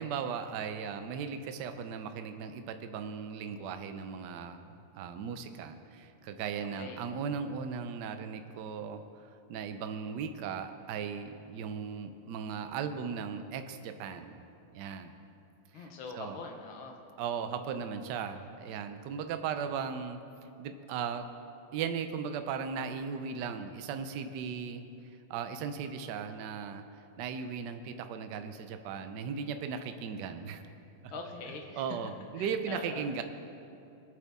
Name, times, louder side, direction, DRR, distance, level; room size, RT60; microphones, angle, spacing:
voice 1, 0.0-4.6 5.0-14.4 14.7-15.1 15.8-15.9 16.1-16.4 17.2-20.2 20.6-21.3 21.7-24.8 25.3-26.8 27.2-30.6 31.0-31.1 31.7-33.2, right 6 dB, 65° right, 8 dB, 1.1 m, -37 dB
voice 2, 15.7-17.0 31.1-32.0 32.4-33.0, left 3 dB, 70° left, 3 dB, 1.8 m, -43 dB
21.5 x 8.1 x 3.6 m, 2.7 s
omnidirectional pair, 2.4 m